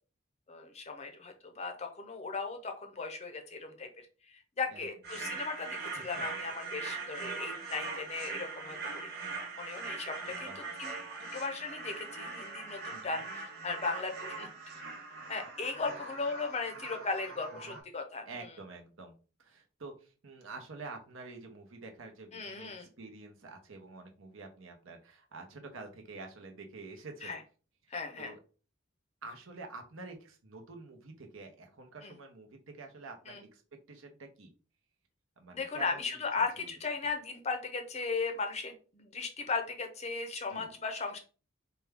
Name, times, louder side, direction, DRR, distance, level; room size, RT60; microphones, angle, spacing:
voice 1, 0.5-3.9 4.3-9.1 9.6-10.5 10.8-10.9 11.3-13.2 13.6-14.5 15.3-18.3 22.3-22.9 27.2-27.4 27.9-28.3 32.0-32.1 33.3-33.4 35.5-41.2, left 4 dB, 30° left, 5 dB, 0.6 m, -37 dB
sound 1, 5.0-17.8, right 4 dB, 50° right, 1.2 m, -41 dB
voice 2, 5.9-6.2 10.4-10.6 12.9-13.2 15.4-15.5 15.9-16.1 17.6-17.8 18.3-27.3 27.8-28.4 29.2-34.5 35.4-36.4 40.5-40.7, right 3 dB, 70° right, 4 dB, 0.8 m, -48 dB
4.3 x 2.3 x 3.4 m, 0.36 s
head